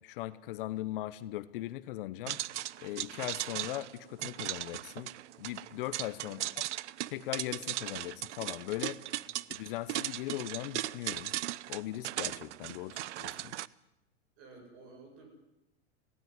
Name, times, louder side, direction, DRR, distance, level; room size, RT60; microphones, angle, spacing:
voice 1, 0.0-2.4 2.8-5.1 5.4-6.7 7.1-9.0 9.5-11.3 11.7-13.5, left 16 dB, 50° left, 16 dB, 0.9 m, -39 dB
sound 1, 2.3-13.7, right 15 dB, 75° right, 0.7 m, -38 dB
voice 2, 14.4-15.3, right 3 dB, 40° right, 3 dB, 8.0 m, -54 dB
18.5 x 16.5 x 9.6 m, 0.93 s
supercardioid pair, 155°, 36 cm